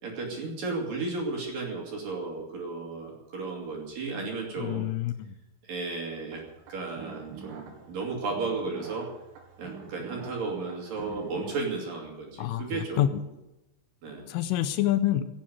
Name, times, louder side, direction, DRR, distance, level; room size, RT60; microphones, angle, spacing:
voice 1, 0.0-4.9 5.6-6.4 6.7-9.1 9.6-13.0 14.0-14.2, right 3 dB, 50° right, 0 dB, 3.9 m, -34 dB
voice 2, 4.6-5.3 12.4-13.2 14.3-15.3, left 12 dB, 85° left, 11 dB, 3.2 m, -27 dB
sound 1, 6.3-11.6, right 6 dB, 85° right, 4.8 m, -46 dB
17.5 x 7.6 x 9.4 m, 0.97 s
omnidirectional pair, 5.9 m